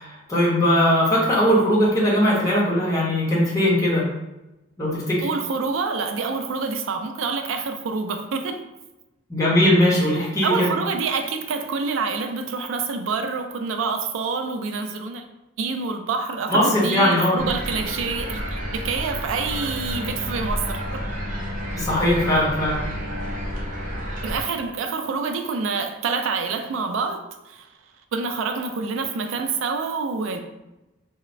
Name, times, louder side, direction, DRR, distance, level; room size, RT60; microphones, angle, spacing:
voice 1, 0.0-4.0 4.8-5.3 9.3-10.7 16.5-17.4 21.7-22.8, equal, 15° left, -7 dB, 0.7 m, -20 dB
voice 2, 5.2-8.6 10.4-15.3 15.6-21.0 24.2-27.7 28.1-30.4, right 4 dB, 85° right, 5 dB, 0.3 m, -27 dB
sound 1, 17.4-24.4, equal, 40° right, 0.6 m, -30 dB
3.0 x 2.0 x 2.5 m, 0.97 s
head